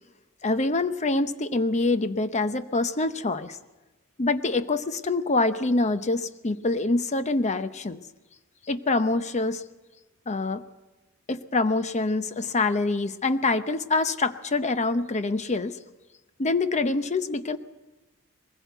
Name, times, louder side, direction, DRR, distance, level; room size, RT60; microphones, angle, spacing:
voice 1, 0.4-3.6 4.2-8.0 8.7-9.6 10.3-10.6 11.3-15.8 16.4-17.6, left 3 dB, 35° left, 11 dB, 0.8 m, -25 dB
21.0 x 15.5 x 8.0 m, 1.1 s
head